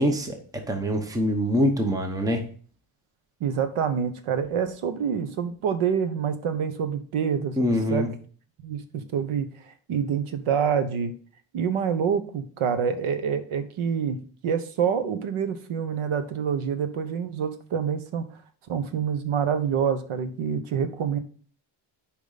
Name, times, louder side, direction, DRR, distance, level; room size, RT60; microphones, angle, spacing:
voice 1, 0.0-2.5 7.6-8.1, equal, 5° right, 5 dB, 0.9 m, -24 dB
voice 2, 3.4-8.1 8.6-11.2 11.5-18.3 18.7-21.2, right 7 dB, 85° right, 10 dB, 1.2 m, -27 dB
8.6 x 5.0 x 4.0 m, 0.44 s
wide cardioid pair, 165°, 49 cm